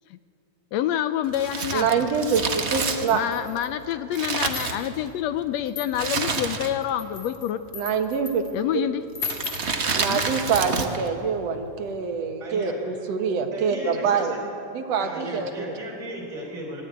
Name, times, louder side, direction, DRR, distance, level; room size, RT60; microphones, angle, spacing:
voice 1, 0.7-2.1 3.1-7.6 8.5-9.0 10.1-10.2, left 11 dB, 75° left, 12 dB, 1.7 m, -27 dB
Crumpling crinkling, 1.3-5.3 5.9-7.0 7.2-7.3 8.1-8.5 9.2-11.1 11.3-11.4, right 4 dB, 90° right, 0.5 m, -28 dB
voice 2, 1.7-3.2 7.7-8.4 8.7-8.9 10.0-14.4 14.7-15.7, right 6 dB, 65° right, 5 dB, 2.4 m, -25 dB
sound 1, 3.1-3.8 4.3-5.0 5.7-6.2 6.8-8.5 9.1-9.7, left 8 dB, 50° left, 2.5 m, -37 dB
voice 3, 12.4-12.7 13.0-13.1 13.5-14.5 15.0-16.8, right 1 dB, 25° right, -4 dB, 3.8 m, -36 dB
24.5 x 14.0 x 9.0 m, 2.9 s
omnidirectional pair, 3.3 m